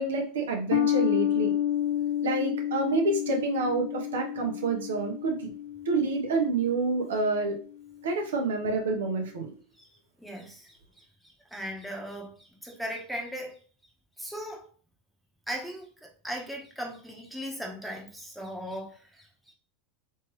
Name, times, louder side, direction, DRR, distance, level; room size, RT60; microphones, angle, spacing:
voice 1, 0.0-1.5 2.2-5.5 5.8-7.6 8.0-9.5, right 3 dB, 85° right, 0.9 m, -28 dB
sound 1, 0.7-7.4, left 11 dB, 70° left, 0.5 m, -30 dB
voice 2, 10.2-11.0 11.5-13.6 14.2-14.7 15.5-15.9 16.2-19.3, equal, ahead, 1.0 m, -38 dB
3.3 x 3.3 x 3.0 m
hypercardioid pair, 105°, 0 cm